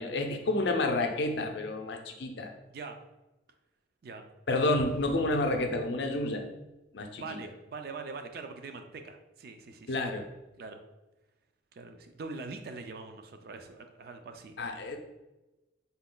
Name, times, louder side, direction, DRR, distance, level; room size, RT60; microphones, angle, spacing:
voice 1, 0.0-2.5 4.5-6.5 6.9-7.4 9.9-10.3 14.6-15.0, left 2 dB, 65° left, 4 dB, 0.5 m, -30 dB
Explosion, 4.8-6.5, equal, 70° right, 0.8 m, -49 dB
voice 2, 7.2-10.0 10.6-10.8 11.7-14.5, right 4 dB, 50° right, 6 dB, 0.4 m, -43 dB
4.0 x 2.2 x 3.7 m, 1.0 s
head